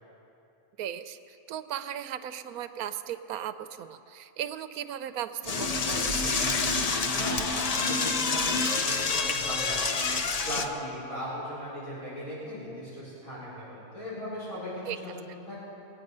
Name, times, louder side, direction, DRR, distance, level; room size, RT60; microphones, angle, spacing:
voice 1, 0.8-6.3 14.9-15.0, right 10 dB, 85° right, 11 dB, 1.1 m, -37 dB
Door / Toilet flush, 5.4-10.7, left 4 dB, 50° left, 0.4 m, -27 dB
voice 2, 7.1-10.0 10.4-15.6, equal, 70° left, -11 dB, 4.6 m, -38 dB
21.0 x 9.0 x 5.4 m, 2.8 s
omnidirectional pair, 1.5 m